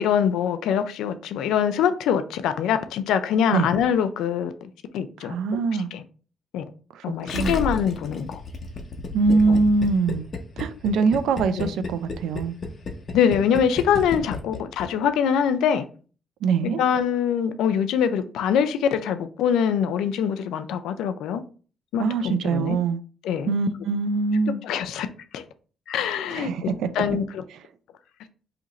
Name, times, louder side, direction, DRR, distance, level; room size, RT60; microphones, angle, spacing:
voice 1, 0.0-5.6 5.9-6.0 6.5-6.6 7.0-8.4 9.3-9.6 11.6-11.7 13.1-15.9 16.8-21.4 21.9-22.8 23.2-23.5 24.6-25.1 25.3-25.4 25.9-26.7 27.0-27.4, left 8 dB, 85° left, 0.4 m, -24 dB
voice 2, 5.2-5.9 6.9-7.0 7.3-7.5 9.1-10.3 10.6-12.5 16.4-16.8 22.0-23.0 23.5-24.6 26.3-26.9, right 4 dB, 80° right, 0.3 m, -23 dB
Gurgling, 7.3-14.9 15.1-15.2, left 3 dB, 45° left, 0.7 m, -32 dB
2.8 x 2.5 x 4.0 m
cardioid pair, 90°, 0 cm